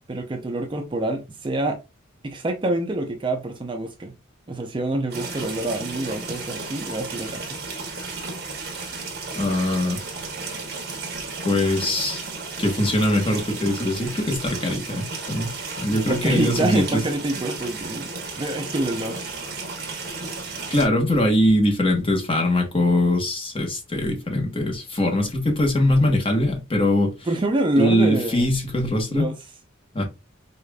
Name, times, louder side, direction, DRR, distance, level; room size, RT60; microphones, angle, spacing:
voice 1, 0.1-1.8 2.2-4.1 4.5-7.6 15.9-19.2 27.3-28.5 29.1-29.4, right 1 dB, 25° right, 0.5 m, -26 dB
sound 1, 5.1-20.8, right 4 dB, 55° right, 1.2 m, -34 dB
voice 2, 9.4-10.0 11.4-12.3 12.6-17.0 20.7-27.1 27.8-29.3 29.9-30.1, left 1 dB, 25° left, 0.9 m, -22 dB
5.0 x 2.4 x 2.2 m
head